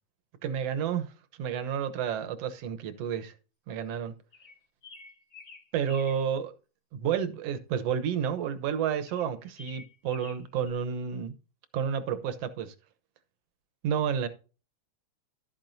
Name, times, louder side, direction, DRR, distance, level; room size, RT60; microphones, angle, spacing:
voice 1, 0.4-1.1 1.4-3.3 3.7-4.1 5.7-6.5 6.9-11.3 11.7-12.7 13.8-14.3, right 8 dB, 65° right, 2.0 m, -30 dB
sound 1, 4.3-6.2 9.0-10.7, left 4 dB, 35° left, 1.8 m, -49 dB
12.5 x 9.0 x 2.7 m
omnidirectional pair, 3.3 m